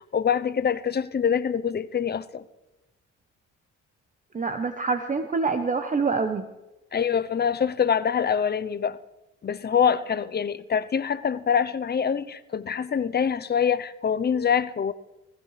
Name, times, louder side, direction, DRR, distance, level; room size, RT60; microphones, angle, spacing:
voice 1, 0.0-2.4 6.9-9.0 9.4-14.9, left 7 dB, 35° left, 0.7 m, -25 dB
voice 2, 4.3-6.4, right 4 dB, 25° right, 0.9 m, -26 dB
18.5 x 15.5 x 3.3 m
cardioid pair, 90°, 30 cm